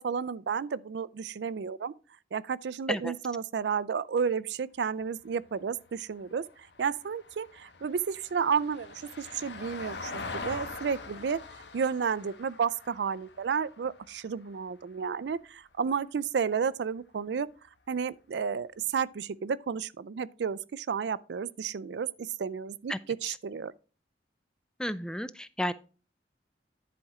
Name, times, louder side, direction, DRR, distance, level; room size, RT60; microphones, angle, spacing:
voice 1, 0.0-1.9 2.3-6.4 6.8-11.4 11.7-17.5 17.9-23.7, right 6 dB, 70° right, 0.4 m, -32 dB
Vehicle, 4.9-15.4 17.7-17.8, left 3 dB, 75° left, 1.1 m, -44 dB
voice 2, 24.8-25.7, equal, 5° left, 0.3 m, -32 dB
10.5 x 4.3 x 4.8 m
head